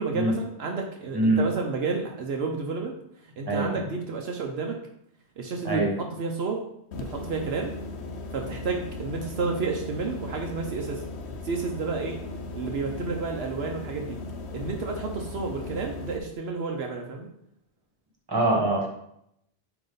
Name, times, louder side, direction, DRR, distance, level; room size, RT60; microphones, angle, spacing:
voice 1, 0.0-2.9 3.4-4.8 5.4-6.6 6.9-7.7 8.3-11.0 11.4-12.2 12.5-14.2 14.5-17.3, right 4 dB, 75° right, 2 dB, 1.0 m, -31 dB
voice 2, 3.5-3.9 5.6-5.9 18.3-18.9, right 2 dB, 20° right, -2 dB, 1.5 m, -24 dB
sound 1, 6.9-16.2, left 2 dB, 85° left, 1.0 m, -37 dB
8.9 x 3.0 x 3.9 m, 0.75 s
omnidirectional pair, 1.1 m